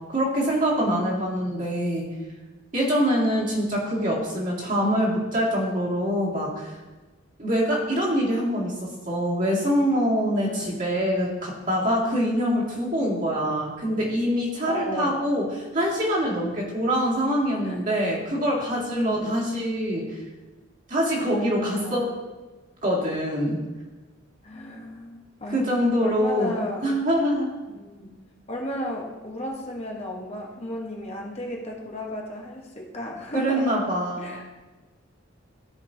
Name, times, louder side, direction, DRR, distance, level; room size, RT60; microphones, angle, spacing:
voice 1, 0.1-2.1 2.7-6.7 7.4-15.4 15.7-20.2 20.9-22.1 22.8-23.6 25.5-27.5 33.3-34.4, equal, 40° right, -5 dB, 2.2 m, -24 dB
voice 2, 0.8-1.4 10.4-10.8 14.6-15.2 17.6-17.8 18.9-19.4 21.3-22.1 24.4-25.7 26.0-26.9 27.7-28.1 28.5-33.8 34.2-34.4, equal, 35° left, -1 dB, 1.1 m, -33 dB
14.0 x 5.4 x 2.7 m, 1.2 s
head